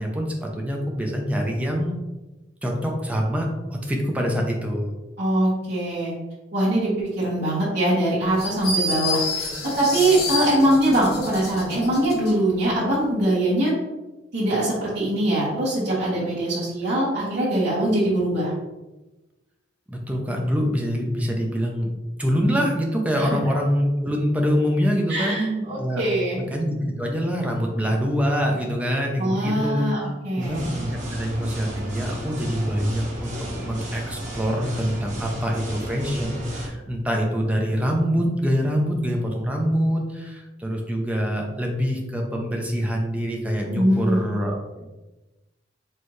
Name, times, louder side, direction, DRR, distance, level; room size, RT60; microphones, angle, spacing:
voice 1, 0.0-1.9 2.6-4.9 19.9-21.9 22.2-26.0 26.5-29.8 30.4-44.9, equal, 10° right, 0 dB, 0.6 m, -25 dB
voice 2, 5.2-6.1 6.5-9.5 9.8-13.7 14.3-18.5 23.2-23.3 25.1-26.4 29.2-30.7 43.7-44.3, right 1 dB, 60° right, -8 dB, 1.4 m, -22 dB
sound 1, 8.4-12.3, left 2 dB, 55° left, 0.9 m, -29 dB
sound 2, 30.4-36.7, right 1 dB, 40° right, 1.1 m, -34 dB
4.5 x 3.3 x 3.1 m, 1.1 s
head